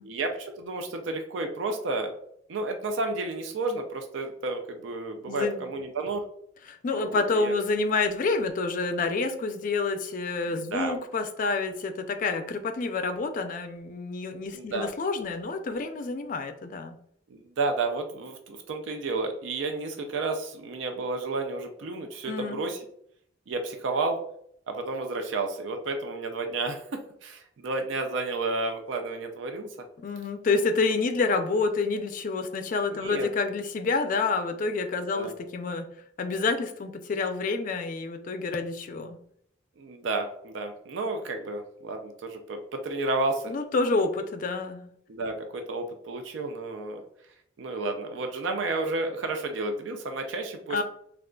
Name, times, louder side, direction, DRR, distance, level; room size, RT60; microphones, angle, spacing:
voice 1, 0.0-2.1 2.5-6.3 6.9-7.5 10.7-11.0 14.5-14.9 17.3-22.8 23.5-24.2 24.7-29.7 32.9-33.3 35.1-35.3 39.8-43.5 45.1-47.0 47.6-50.8, right 3 dB, 90° right, 5 dB, 0.4 m, -31 dB
voice 2, 5.3-5.7 6.7-17.0 22.3-22.6 30.0-35.9 36.2-39.2 43.5-44.9 50.7-50.8, left 3 dB, 45° left, 7 dB, 0.4 m, -28 dB
3.6 x 2.3 x 2.2 m, 0.68 s
head